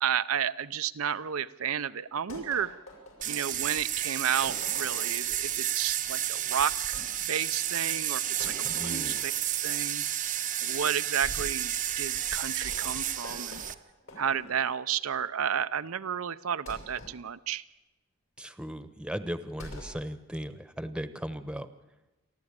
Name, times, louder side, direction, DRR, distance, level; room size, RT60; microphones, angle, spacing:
voice 1, 0.0-2.8 3.3-7.0 7.3-9.3 9.6-10.0 10.6-13.6 14.2-17.6, right 8 dB, 85° right, 12 dB, 0.6 m, -32 dB
sound 1, 2.3-3.7 4.4-5.3 6.9-7.1 8.4-9.5 11.2-11.6 12.6-14.7 16.7-17.2 19.6-20.0, equal, 65° left, 7.0 m, -45 dB
sound 2, 3.2-13.7, right 11 dB, 40° right, 0.8 m, -31 dB
voice 2, 8.6-9.2 18.4-21.7, equal, 5° right, 11 dB, 1.0 m, -37 dB
28.5 x 12.0 x 8.7 m, 1.0 s
head